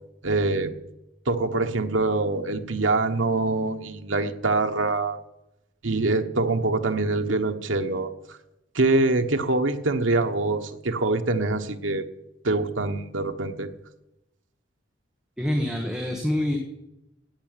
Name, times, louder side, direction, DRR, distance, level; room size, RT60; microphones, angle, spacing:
voice 1, 0.2-0.7 1.3-5.2 5.8-8.4 8.7-12.0 12.4-13.7, right 2 dB, 85° right, 6 dB, 1.2 m, -24 dB
voice 2, 15.4-16.6, left 1 dB, 5° right, 1 dB, 1.6 m, -26 dB
16.5 x 5.9 x 9.1 m, 0.90 s
head